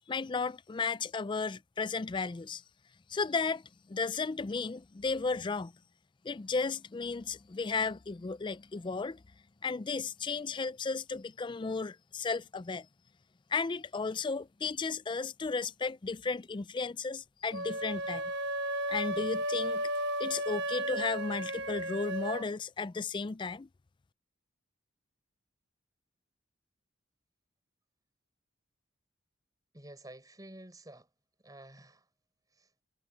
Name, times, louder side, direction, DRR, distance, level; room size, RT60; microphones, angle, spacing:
voice 1, 0.1-2.6 3.1-3.6 3.9-5.7 6.2-9.2 9.6-12.9 13.5-18.2 18.9-19.9 20.2-23.7, left 4 dB, 25° left, 0.4 m, -34 dB
sound 1, 17.5-22.5, right 1 dB, 60° right, 1.3 m, -34 dB
voice 2, 29.7-31.1 31.4-32.1 32.5-32.7, right 1 dB, 20° right, 5.9 m, -50 dB
head